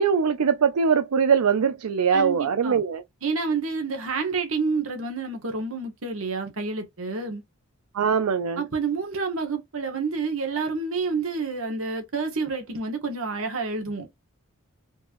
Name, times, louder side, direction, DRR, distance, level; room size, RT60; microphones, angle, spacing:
voice 1, 0.0-3.0 7.9-8.6, right 6 dB, 85° right, 0.4 m, -22 dB
voice 2, 2.1-2.8 3.2-7.4 8.6-14.1, right 4 dB, 65° right, 1.4 m, -29 dB
4.4 x 3.0 x 2.6 m
head